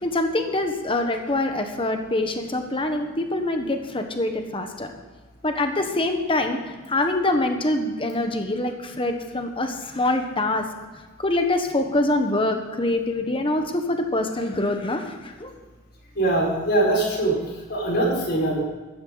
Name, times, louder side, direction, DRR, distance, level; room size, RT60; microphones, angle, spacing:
voice 1, 0.0-4.9 5.4-10.7 11.2-15.5, left 2 dB, 25° left, 5 dB, 1.2 m, -25 dB
voice 2, 16.1-18.6, right 2 dB, 50° left, -2 dB, 5.1 m, -22 dB
16.0 x 13.0 x 4.1 m, 1.3 s
head